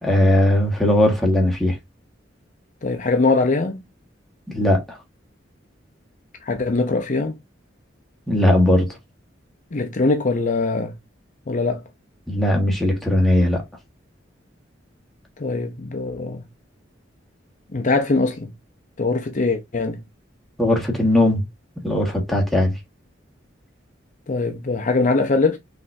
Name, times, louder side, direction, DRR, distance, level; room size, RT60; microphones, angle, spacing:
voice 1, 0.0-1.8 4.5-5.0 8.3-8.9 12.3-13.6 20.6-21.4 21.8-22.7, left 1 dB, ahead, 1.5 m, -18 dB
voice 2, 2.8-3.8 6.4-7.4 9.7-10.9 11.5-11.8 15.4-16.4 17.7-18.5 19.0-20.0 24.3-25.6, left 3 dB, 45° left, 0.6 m, -22 dB
5.5 x 3.4 x 2.6 m
head